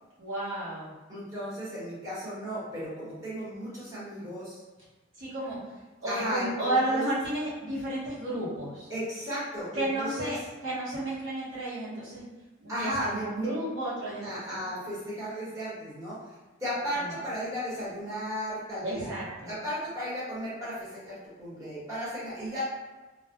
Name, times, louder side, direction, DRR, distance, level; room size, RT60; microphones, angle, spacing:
voice 1, 0.2-0.9 5.2-5.6 6.0-8.9 9.7-10.4 10.6-12.2 12.6-14.7 16.9-17.1 18.8-19.5, right 1 dB, 75° right, -9 dB, 0.9 m, -32 dB
voice 2, 1.1-4.6 6.1-7.0 8.9-10.3 12.7-13.5 14.2-16.3 16.6-19.1 19.5-22.7, equal, 15° right, -11 dB, 1.0 m, -35 dB
2.1 x 2.1 x 2.8 m, 1.2 s
head